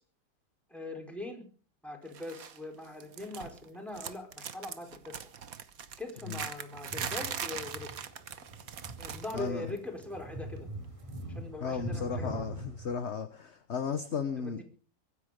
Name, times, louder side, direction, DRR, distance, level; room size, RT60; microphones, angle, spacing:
voice 1, 0.7-1.4 1.8-5.2 6.0-7.9 9.0-10.7 11.3-12.5 14.4-14.6, left 2 dB, ahead, 1 dB, 4.5 m, -41 dB
sound 1, 2.1-2.6 2.8-3.7 3.9-9.5 9.8-10.0 11.1-11.2, right 8 dB, 55° right, 1.5 m, -41 dB
sound 2, 6.7-12.9, right 1 dB, 15° right, 4.7 m, -43 dB
voice 2, 9.3-9.8 11.6-14.6, left 6 dB, 45° left, 10 dB, 1.2 m, -35 dB
24.0 x 10.0 x 5.2 m, 0.41 s
omnidirectional pair, 1.9 m